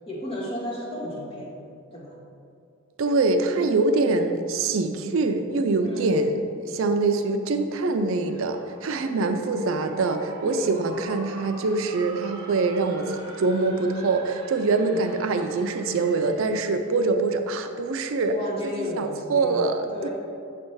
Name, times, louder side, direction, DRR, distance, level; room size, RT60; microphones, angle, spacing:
voice 1, 0.1-1.5 1.9-2.2 5.8-6.3 9.0-9.4 10.4-10.8 14.6-15.0 18.3-20.1, left 1 dB, 25° left, -4 dB, 1.2 m, -34 dB
voice 2, 3.0-6.4 6.6-18.3 18.9-20.1, right 3 dB, 70° right, 7 dB, 0.4 m, -24 dB
sound 1, 8.1-16.9, right 1 dB, 20° right, 1.0 m, -44 dB
6.9 x 3.3 x 5.5 m, 2.5 s
head